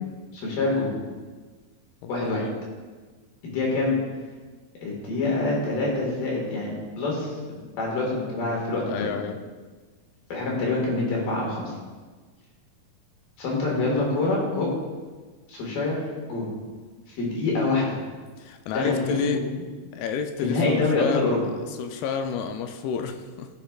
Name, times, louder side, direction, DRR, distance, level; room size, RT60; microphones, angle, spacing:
voice 1, 0.3-0.9 2.1-2.4 3.4-4.0 4.8-9.1 10.3-11.6 13.4-14.7 15.5-16.5 17.2-18.0 18.7-19.7 20.4-21.4, left 3 dB, 70° left, -3 dB, 3.5 m, -26 dB
voice 2, 2.0-2.6 8.8-9.4 18.4-19.4 19.9-23.5, left 6 dB, 85° left, 6 dB, 2.5 m, -31 dB
15.5 x 7.2 x 2.4 m, 1.4 s
omnidirectional pair, 4.4 m